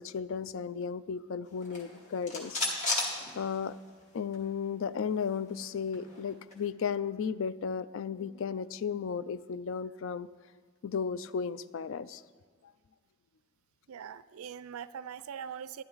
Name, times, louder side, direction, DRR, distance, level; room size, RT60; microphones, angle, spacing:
voice 1, 0.0-2.6 3.4-3.7 4.1-10.3 10.8-12.2, left 6 dB, 60° left, 16 dB, 0.4 m, -34 dB
sound 1, 1.6-4.0 4.3-4.4 4.7-6.6, left 2 dB, 35° left, 2.2 m, -36 dB
voice 2, 13.9-15.8, right 8 dB, 80° right, 16 dB, 0.4 m, -42 dB
12.0 x 12.0 x 4.0 m, 1.5 s
head